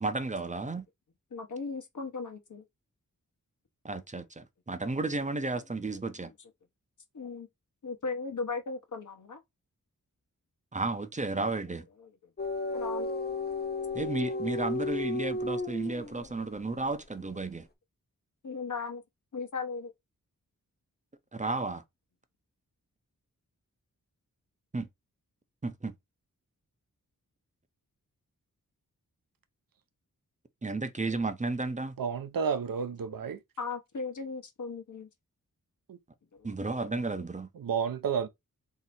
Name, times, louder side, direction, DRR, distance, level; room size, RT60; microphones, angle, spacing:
voice 1, 0.0-0.9 3.8-6.3 10.7-11.9 13.9-17.7 21.3-21.8 24.7-24.9 25.6-25.9 30.6-31.9 36.4-37.5, right 3 dB, 20° right, 0.6 m, -33 dB
voice 2, 1.3-2.6 7.1-7.5 7.8-9.4 12.7-13.1 16.3-16.4 18.4-19.0 19.3-19.9 33.6-35.1 36.4-36.5, left 4 dB, 60° left, 1.0 m, -37 dB
sound 1, 12.4-16.4, left 2 dB, 30° left, 0.6 m, -33 dB
voice 3, 32.0-33.4 35.9-36.0 37.6-38.3, right 6 dB, 75° right, 0.6 m, -31 dB
3.2 x 2.9 x 4.2 m
wide cardioid pair, 85°, 34 cm